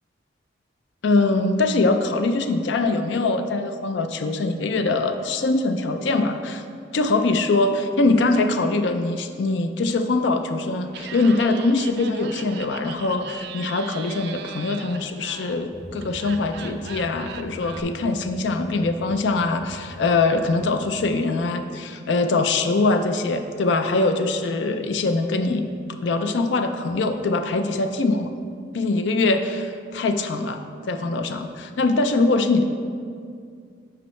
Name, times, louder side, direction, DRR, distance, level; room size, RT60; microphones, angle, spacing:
voice 1, 1.0-6.6 6.9-25.7 26.0-28.4 28.7-32.6, left 3 dB, 70° left, 7 dB, 0.4 m, -23 dB
Laughter, 10.9-17.8, right 7 dB, 60° right, 0.4 m, -39 dB
sound 1, 15.7-21.2, equal, ahead, 0.5 m, -42 dB
8.4 x 5.3 x 3.2 m, 2.2 s
head